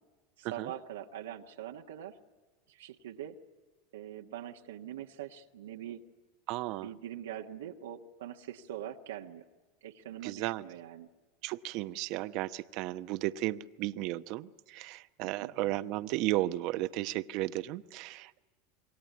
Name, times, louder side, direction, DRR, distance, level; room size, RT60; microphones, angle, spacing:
voice 1, 0.4-2.1 2.7-3.4 3.9-6.0 6.8-9.4 9.8-11.1 15.2-15.5, right 10 dB, 85° right, 2 dB, 1.4 m, -43 dB
voice 2, 6.5-6.9 10.2-10.6 11.4-18.4, right 16 dB, 60° right, 12 dB, 0.9 m, -34 dB
27.0 x 22.5 x 9.4 m, 1.3 s
hypercardioid pair, 105°, 0 cm